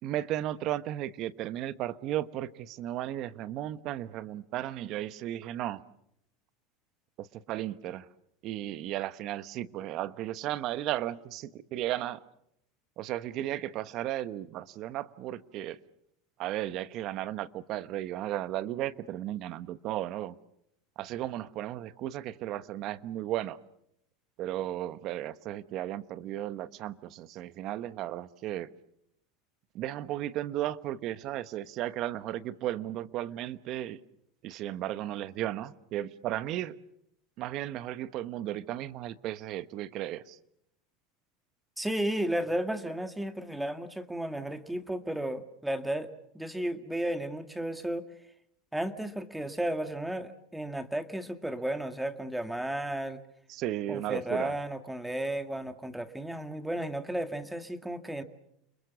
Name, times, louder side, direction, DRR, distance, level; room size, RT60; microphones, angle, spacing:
voice 1, 0.0-5.8 7.2-8.1 8.4-12.2 13.0-15.8 16.4-20.4 21.0-23.6 24.4-28.7 29.7-34.0 34.4-36.8 37.4-40.4 53.5-54.5, right 13 dB, 50° right, 15 dB, 1.1 m, -35 dB
voice 2, 41.8-48.0 48.7-53.2 53.9-58.2, right 1 dB, 5° right, 9 dB, 2.0 m, -33 dB
30.0 x 21.5 x 7.0 m, 0.76 s
supercardioid pair, 115°, 0 cm